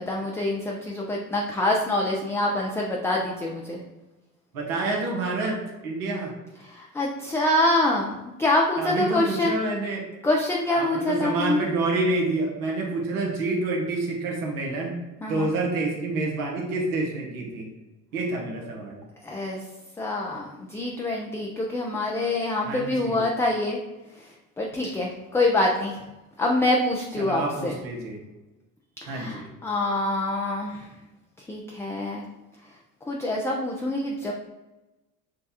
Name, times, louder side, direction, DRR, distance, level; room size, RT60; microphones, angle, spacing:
voice 1, 0.0-3.8 6.6-9.6 10.2-11.6 15.2-15.5 19.2-19.6 20.0-23.8 24.2-26.0 26.4-27.8 29.0-30.9 31.5-32.2 33.1-34.3, left 2 dB, 5° left, -2 dB, 0.3 m, -26 dB
voice 2, 4.5-6.3 8.8-10.0 10.7-14.9 15.3-17.7 18.1-19.0 22.7-23.2 27.2-28.2 29.1-29.5, right 2 dB, 75° right, -1 dB, 1.2 m, -28 dB
6.3 x 2.3 x 2.7 m, 1.1 s
hypercardioid pair, 70°, 43 cm